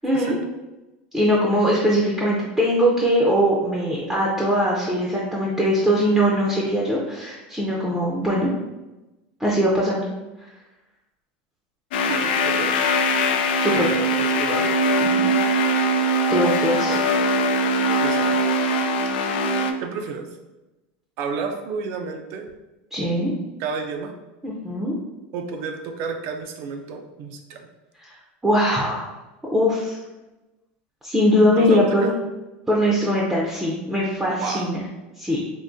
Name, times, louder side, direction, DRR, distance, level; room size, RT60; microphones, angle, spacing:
voice 1, 0.0-0.4 1.1-8.5 9.4-10.0 13.6-13.9 15.0-15.3 16.3-17.0 22.9-23.3 24.4-25.0 28.4-29.0 29.5-30.0 31.0-32.1 32.7-34.8 35.2-35.4, equal, 5° right, -4 dB, 0.5 m, -21 dB
sound 1, 11.9-19.7, equal, 85° left, 0.3 m, -21 dB
voice 2, 12.1-12.8 13.7-14.7 16.8-18.3 19.8-20.3 21.2-22.5 23.6-24.1 25.3-27.7 31.6-32.1 34.4-34.7, right 5 dB, 55° right, 5 dB, 0.5 m, -31 dB
3.7 x 2.6 x 2.6 m, 1.0 s
supercardioid pair, 140°, 5 cm